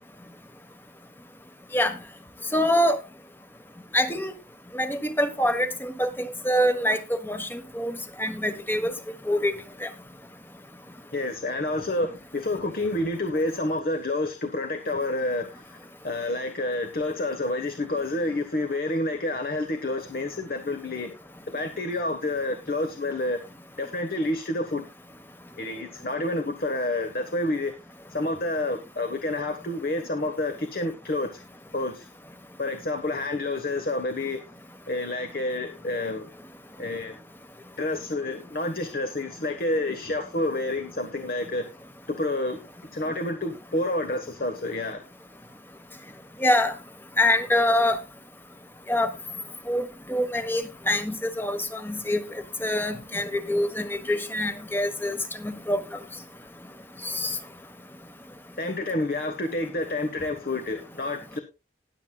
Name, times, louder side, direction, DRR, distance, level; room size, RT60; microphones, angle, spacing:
voice 1, 2.5-3.0 3.9-4.3 4.7-7.0 7.2-8.9 9.3-9.5 9.8-9.9 46.4-46.7 47.2-48.0 48.9-49.1 49.7-52.2 52.6-55.2 55.4-55.8 57.1-57.3, left 1 dB, 10° left, 9 dB, 1.2 m, -25 dB
voice 2, 11.1-21.1 21.5-23.4 23.8-24.9 25.6-27.7 28.1-31.4 31.7-32.1 32.6-34.4 34.9-36.3 36.8-37.2 37.8-41.7 42.1-42.6 42.9-45.0 58.6-61.4, left 2 dB, 55° left, 6 dB, 1.3 m, -29 dB
19.5 x 7.5 x 2.3 m, 0.26 s
head